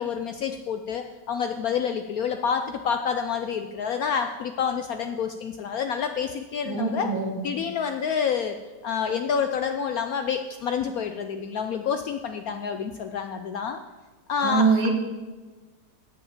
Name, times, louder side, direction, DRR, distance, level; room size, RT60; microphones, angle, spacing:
voice 1, 0.0-7.1 7.4-8.6 8.8-13.8 14.3-14.8, left 7 dB, 75° left, 7 dB, 0.8 m, -28 dB
voice 2, 6.7-7.4 14.4-14.9, right 4 dB, 90° right, 3 dB, 2.2 m, -23 dB
8.5 x 7.9 x 7.2 m, 1.3 s
omnidirectional pair, 2.1 m